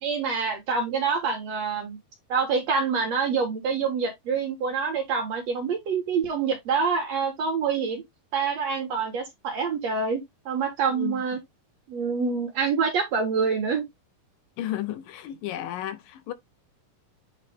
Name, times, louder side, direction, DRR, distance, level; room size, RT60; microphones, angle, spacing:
voice 1, 0.0-2.0 2.3-8.0 8.3-11.4 11.9-13.8, right 5 dB, 60° right, 2.0 m, -26 dB
voice 2, 10.9-11.2 14.6-16.3, left 13 dB, 80° left, 2.3 m, -33 dB
8.5 x 3.2 x 3.5 m
omnidirectional pair, 4.2 m